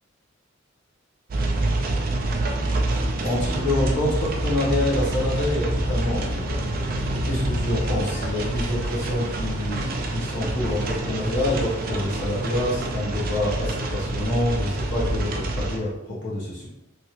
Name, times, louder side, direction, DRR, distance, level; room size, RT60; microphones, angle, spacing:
sound 1, 1.3-15.8, right 1 dB, 45° right, 0.4 m, -27 dB
sound 2, 2.4-13.7, right 1 dB, 10° right, 1.4 m, -43 dB
voice 1, 3.2-6.4 7.1-16.7, left 1 dB, 60° left, -6 dB, 1.1 m, -27 dB
3.3 x 2.8 x 2.9 m, 0.89 s
head